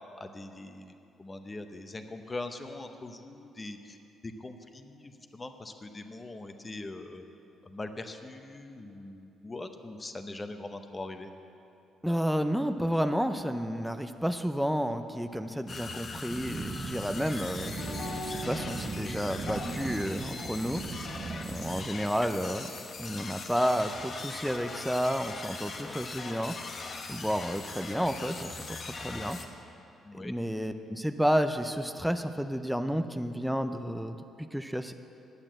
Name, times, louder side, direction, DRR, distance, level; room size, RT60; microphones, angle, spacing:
voice 1, 0.2-4.0 4.2-7.2 7.6-11.3 22.2-22.3 30.0-30.3, left 2 dB, 25° left, 7 dB, 0.9 m, -42 dB
voice 2, 12.0-21.0 21.5-22.7 23.0-26.6 27.1-28.6 28.8-29.4 30.2-34.9, equal, ahead, 8 dB, 0.5 m, -31 dB
sound 1, 15.7-29.5, left 4 dB, 50° left, 1.0 m, -41 dB
sound 2, 16.3-21.8, right 5 dB, 45° right, 0.6 m, -40 dB
sound 3, 16.6-22.3, left 1 dB, 65° left, 2.0 m, -43 dB
9.7 x 9.0 x 7.6 m, 2.9 s
cardioid pair, 90°, 0 cm